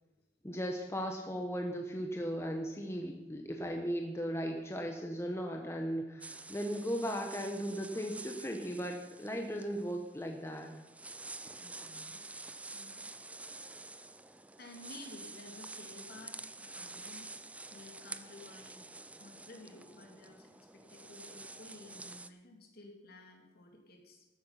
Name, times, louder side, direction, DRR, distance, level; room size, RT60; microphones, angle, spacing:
voice 1, 0.4-10.7, equal, 15° left, 2 dB, 1.0 m, -37 dB
sound 1, 6.2-22.3, right 3 dB, 5° right, 0.4 m, -49 dB
voice 2, 11.6-12.2 12.7-13.1 13.5-14.2 14.6-17.3 17.7-18.9 19.2-24.3, left 2 dB, 55° left, 2 dB, 2.6 m, -54 dB
13.0 x 8.9 x 5.7 m, 1.0 s
head